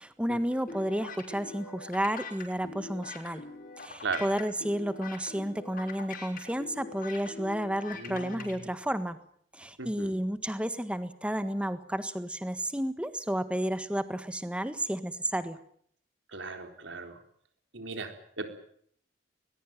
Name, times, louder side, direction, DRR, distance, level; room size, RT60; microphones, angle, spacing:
voice 1, 0.0-3.4 3.8-9.2 9.5-15.6, right 1 dB, 5° right, 11 dB, 1.5 m, -32 dB
sound 1, 0.7-8.5, left 4 dB, 50° left, 6.0 m, -43 dB
voice 2, 7.9-8.6 9.8-10.2 16.3-17.2 17.7-18.5, right 4 dB, 80° right, 6 dB, 4.0 m, -37 dB
21.0 x 20.5 x 9.1 m, 0.64 s
head